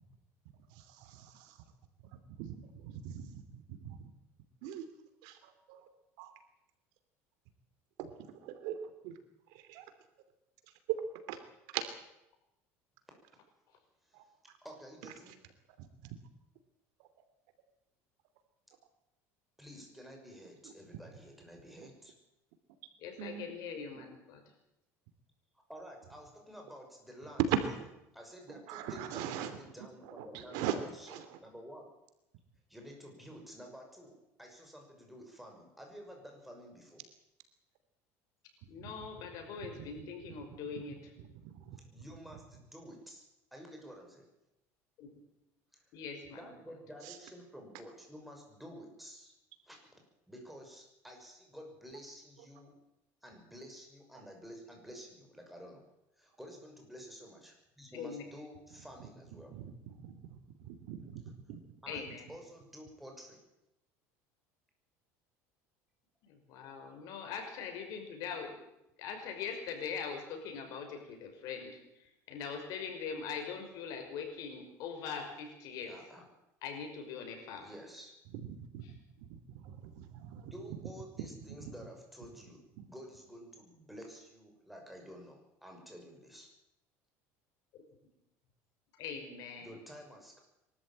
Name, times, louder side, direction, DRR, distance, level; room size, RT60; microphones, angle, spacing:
voice 1, 0.7-1.6 2.4-4.1 4.6-4.8 5.2-5.9 6.2-6.3 8.0-8.8 9.0-9.2 9.5-9.8 11.3-11.4 11.7-11.9 14.1-14.2 15.0-15.3 15.8-16.2 20.6-20.7 23.2-23.5 23.9-24.0 27.5-27.6 28.5-31.4 38.8-38.9 39.6-39.9 40.3-40.5 41.4-41.8 47.0-47.2 59.5-61.2 61.5-61.6 78.4-80.5 80.8-80.9 81.6-81.7 82.8-82.9, right 10 dB, 70° right, 9 dB, 2.9 m, -42 dB
voice 2, 14.6-15.4 19.6-22.1 25.7-27.4 28.1-31.9 32.7-37.0 41.9-43.2 43.5-44.3 45.7-45.8 46.4-49.3 49.7-49.8 50.3-52.7 53.2-55.8 56.2-59.5 61.8-63.4 75.9-76.3 77.6-78.1 80.3-86.5 89.6-90.4, equal, ahead, 1 dB, 6.1 m, -51 dB
voice 3, 23.0-24.4 38.7-41.0 45.0-45.1 45.9-46.5 57.9-58.2 61.9-62.3 66.2-68.6 69.0-75.9 76.6-77.7 89.0-89.8, left 6 dB, 60° left, 4 dB, 5.7 m, -42 dB
23.0 x 13.5 x 8.9 m, 0.90 s
supercardioid pair, 125°, 7 cm